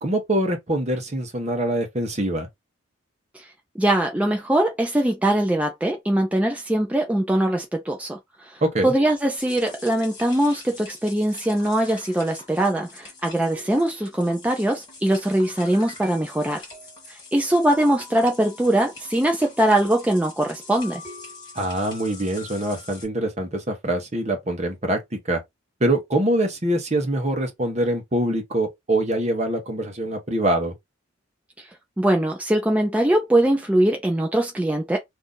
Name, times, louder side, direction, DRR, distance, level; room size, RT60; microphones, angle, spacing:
voice 1, 0.0-2.5 8.6-8.9 21.5-25.4 25.8-30.7, right 1 dB, 35° right, 0.9 m, -24 dB
voice 2, 3.8-16.6 17.1-21.0 31.6-31.7 32.0-35.0, right 1 dB, 5° right, 0.5 m, -22 dB
sound 1, 9.4-23.1, left 3 dB, 25° left, 1.8 m, -43 dB
2.7 x 2.6 x 3.7 m
head